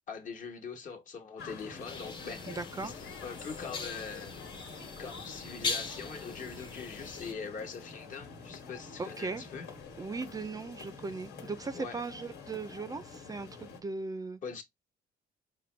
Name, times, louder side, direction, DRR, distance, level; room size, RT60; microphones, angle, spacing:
voice 1, 0.1-2.9 3.2-4.4 5.0-9.7 11.7-12.0 14.4-14.6, left 5 dB, 50° left, 1.2 m, -42 dB
sound 1, 1.4-13.8, left 5 dB, 75° left, 1.5 m, -47 dB
sound 2, 1.9-7.3, left 4 dB, 25° left, 0.8 m, -40 dB
voice 2, 2.5-3.0 9.0-9.4 10.0-14.4, right 3 dB, 20° right, 0.4 m, -38 dB
5.0 x 2.2 x 3.2 m
cardioid pair, 110°, 17 cm